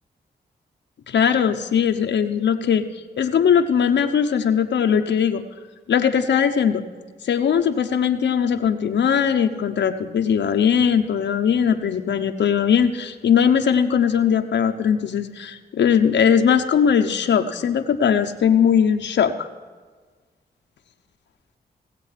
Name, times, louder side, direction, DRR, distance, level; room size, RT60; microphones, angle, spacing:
voice 1, 1.1-2.9 3.2-5.4 5.9-6.8 7.2-19.5, left 7 dB, 80° left, 6 dB, 0.8 m, -19 dB
18.0 x 7.6 x 5.7 m, 1.4 s
cardioid pair, 60°, 18 cm